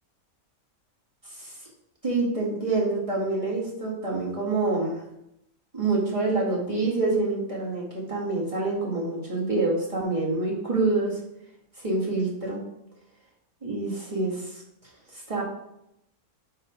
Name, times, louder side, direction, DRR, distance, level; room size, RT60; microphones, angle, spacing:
voice 1, 2.0-5.0 5.7-11.2 11.8-12.6 13.6-14.6 15.1-15.4, right 3 dB, 25° right, -5 dB, 1.9 m, -26 dB
7.1 x 3.9 x 5.1 m, 0.82 s
omnidirectional pair, 1.5 m